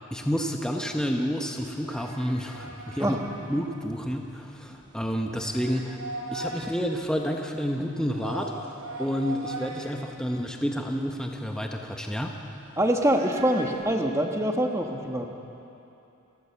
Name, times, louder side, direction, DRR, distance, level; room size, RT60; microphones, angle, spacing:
voice 1, 0.1-3.2 3.5-6.0 6.3-8.5 9.0-12.3, equal, 5° left, 2 dB, 1.1 m, -29 dB
sound 1, 1.7-13.7, right 2 dB, 75° right, 5.9 m, -41 dB
voice 2, 12.8-15.3, right 1 dB, 15° right, 2 dB, 1.3 m, -25 dB
28.5 x 13.5 x 7.1 m, 2.9 s
head